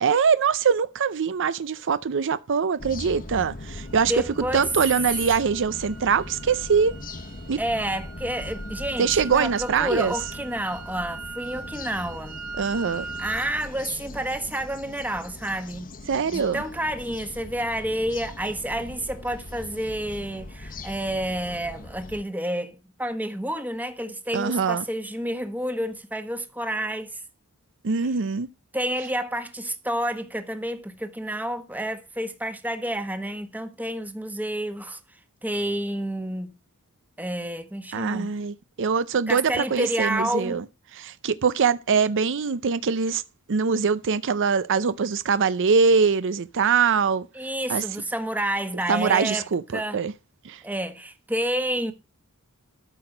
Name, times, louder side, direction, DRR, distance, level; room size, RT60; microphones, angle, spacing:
voice 1, 0.0-4.1 4.5-6.9 7.5-7.6 9.0-10.1 12.6-13.1 16.1-16.6 24.3-24.8 27.8-28.5 37.9-40.6 40.9-43.2 43.5-47.3 47.7-47.8 48.9-50.1 50.4-50.6, right 6 dB, 60° right, 0.6 m, -23 dB
sound 1, 2.8-22.2, left 2 dB, 40° left, 1.1 m, -40 dB
sound 2, 3.8-13.5, right 4 dB, 85° right, 2.3 m, -41 dB
voice 2, 4.1-4.7 7.6-12.4 13.2-15.9 16.3-27.2 28.7-35.0 35.4-36.5 37.2-38.3 39.3-40.6 47.3-49.5 49.7-50.0 50.6-51.9, right 1 dB, 10° right, 1.3 m, -29 dB
13.0 x 6.0 x 5.1 m
head